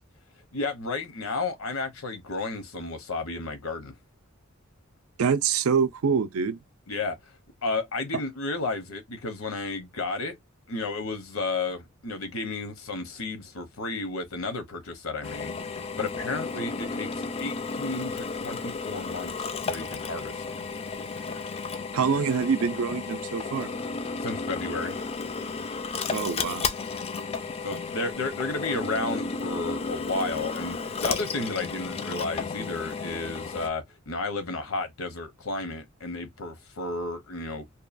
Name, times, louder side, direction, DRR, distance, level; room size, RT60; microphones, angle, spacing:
voice 1, 0.5-3.9 6.9-7.4 7.6-10.4 10.7-15.6 16.0-17.1 17.4-20.6 24.2-25.0 27.6-37.6, left 3 dB, 75° left, 0.8 m, -32 dB
voice 2, 5.2-6.6 21.9-23.7 26.1-26.7, right 6 dB, 80° right, 0.4 m, -25 dB
Drill, 15.2-33.7, left 4 dB, 30° left, 0.3 m, -33 dB
2.9 x 2.2 x 2.4 m
head